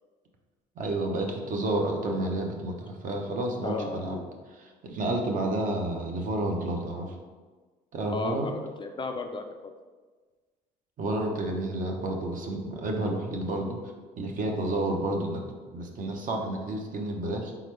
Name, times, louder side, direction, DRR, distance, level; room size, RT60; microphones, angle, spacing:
voice 1, 0.8-4.2 4.6-7.2 7.9-8.5 11.0-13.8 14.2-17.5, right 2 dB, 50° right, 2 dB, 0.8 m, -30 dB
voice 2, 3.6-4.2 8.1-9.7, left 3 dB, 30° left, 5 dB, 0.4 m, -34 dB
4.3 x 3.9 x 3.2 m, 1.4 s
cardioid pair, 110°, 17 cm